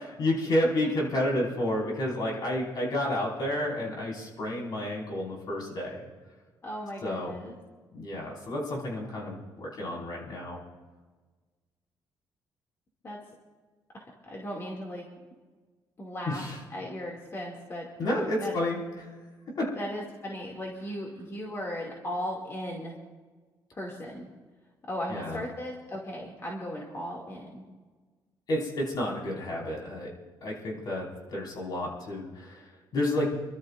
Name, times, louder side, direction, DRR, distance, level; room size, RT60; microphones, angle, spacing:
voice 1, 0.2-6.0 7.0-7.3 7.9-10.6 16.2-16.6 18.0-19.1 19.6-19.7 25.1-25.4 28.5-30.1 30.4-33.4, left 1 dB, 55° left, -2 dB, 5.2 m, -30 dB
voice 2, 6.6-7.5 13.0-13.2 13.9-15.1 16.0-16.4 16.7-17.9 18.4-18.5 19.7-23.0 23.7-24.3 24.9-27.6, equal, 35° left, -2 dB, 2.5 m, -37 dB
28.5 x 13.0 x 2.6 m, 1.4 s
cardioid pair, 110°, 8 cm